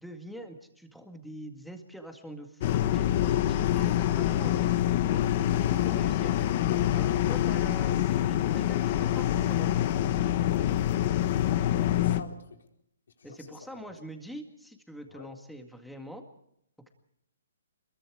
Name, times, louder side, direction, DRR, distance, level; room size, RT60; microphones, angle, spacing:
voice 1, 0.0-6.3 6.9-10.3 13.2-16.2, equal, ahead, 4 dB, 2.0 m, -44 dB
sound 1, 2.6-12.2, left 12 dB, 35° left, 1.2 m, -26 dB
voice 2, 10.9-12.6 13.2-13.6 15.1-15.3, left 5 dB, 75° left, 3 dB, 4.5 m, -49 dB
27.5 x 22.0 x 4.9 m, 0.74 s
hypercardioid pair, 165°, 0 cm